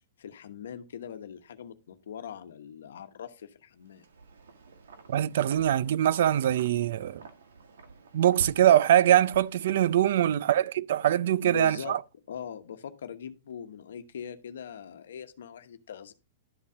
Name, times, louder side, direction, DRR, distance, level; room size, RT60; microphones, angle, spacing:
voice 1, 0.2-4.0 10.2-10.4 11.4-11.9 12.3-16.1, left 8 dB, 80° left, 1.0 m, -41 dB
Wind, 3.8-10.3, right 4 dB, 85° right, 1.6 m, -47 dB
voice 2, 5.1-7.2 8.1-12.0, right 11 dB, 65° right, 0.4 m, -23 dB
11.5 x 4.2 x 4.9 m
hypercardioid pair, 140°, 0 cm